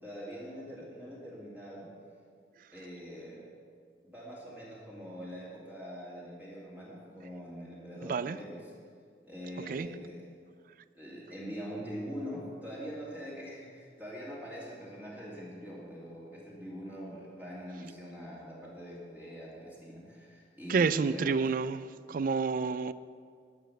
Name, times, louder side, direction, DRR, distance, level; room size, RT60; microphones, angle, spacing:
voice 1, 0.0-1.9 2.7-3.4 4.1-8.7 9.2-10.2 10.9-21.4, equal, 10° right, 2.3 m, -43 dB
voice 2, 20.7-21.8 22.1-22.9, right 5 dB, 50° right, 0.3 m, -29 dB
11.5 x 7.2 x 6.6 m
head